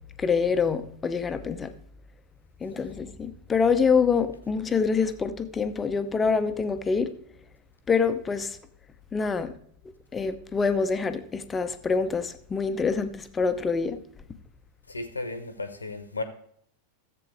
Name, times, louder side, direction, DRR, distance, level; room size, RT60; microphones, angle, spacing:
voice 1, 0.2-1.7 2.6-7.1 7.9-8.6 9.1-9.5 10.1-14.0, left 5 dB, 15° left, 0.8 m, -26 dB
voice 2, 14.9-16.2, left 3 dB, 80° left, 1.0 m, -34 dB
14.0 x 7.8 x 3.3 m
figure-of-eight pair, 90°, 0 cm